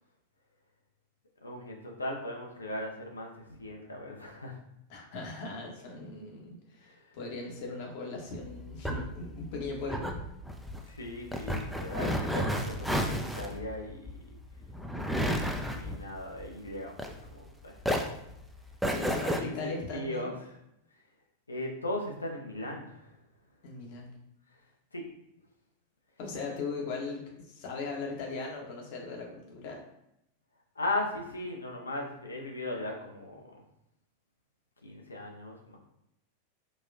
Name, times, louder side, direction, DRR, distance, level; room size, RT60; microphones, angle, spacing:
voice 1, 1.4-4.6 6.8-7.2 10.8-14.2 15.8-17.7 19.3-20.6 21.5-23.1 24.9-25.1 30.8-33.6 34.8-35.8, left 1 dB, 80° left, 1 dB, 0.5 m, -38 dB
voice 2, 4.9-10.2 18.9-20.3 23.6-24.1 26.2-29.8, left 3 dB, 50° left, 0 dB, 0.8 m, -38 dB
sound 1, 8.4-17.5 17.8-19.4, equal, ahead, 0.3 m, -32 dB
4.0 x 2.2 x 2.4 m, 0.81 s
figure-of-eight pair, 90°, 0 cm